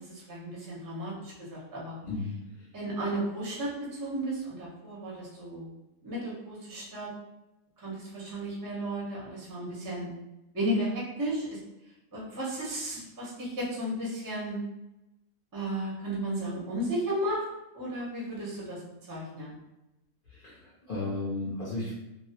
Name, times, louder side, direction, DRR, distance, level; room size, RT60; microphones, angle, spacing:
voice 1, 0.0-2.0 2.7-5.7 6.0-7.1 7.8-10.1 10.5-11.6 12.1-14.6 15.5-17.4 17.7-18.8 19.1-19.5, right 1 dB, 25° right, -5 dB, 0.4 m, -34 dB
voice 2, 20.3-21.9, left 2 dB, 60° left, -7 dB, 0.5 m, -34 dB
2.3 x 2.0 x 2.7 m, 0.95 s
omnidirectional pair, 1.5 m